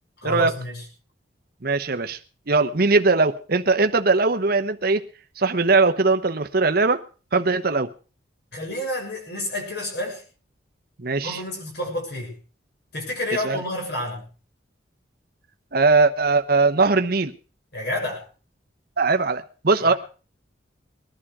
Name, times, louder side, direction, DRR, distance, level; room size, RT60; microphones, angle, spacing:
voice 1, 0.2-0.8 8.5-10.2 11.2-12.3 12.9-14.3 17.7-18.2 19.8-20.0, left 1 dB, 55° left, 6.7 m, -29 dB
voice 2, 1.6-2.2 2.5-5.1 5.4-7.0 7.3-7.9 11.0-11.4 13.4-13.6 15.7-17.3 19.0-19.9, right 3 dB, 50° right, 0.9 m, -20 dB
20.0 x 11.5 x 4.9 m
head